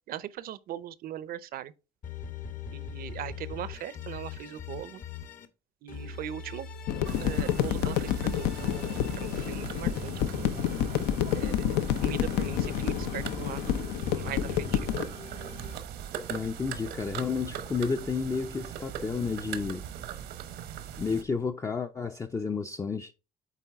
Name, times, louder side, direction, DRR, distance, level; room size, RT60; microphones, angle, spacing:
voice 1, 0.1-1.7 2.7-5.0 5.8-6.7 7.2-10.5 11.3-15.0, right 11 dB, 60° right, 0.6 m, -40 dB
sound 1, 2.0-5.5 5.9-11.4 11.9-15.7, left 5 dB, 55° left, 1.0 m, -42 dB
sound 2, 6.9-15.0, left 10 dB, 85° left, 0.6 m, -29 dB
sound 3, 7.0-21.2, right 9 dB, 80° right, 0.9 m, -40 dB
voice 2, 16.3-19.9 21.0-23.1, left 5 dB, 20° left, 0.4 m, -31 dB
8.3 x 3.8 x 3.5 m
cardioid pair, 110°, 17 cm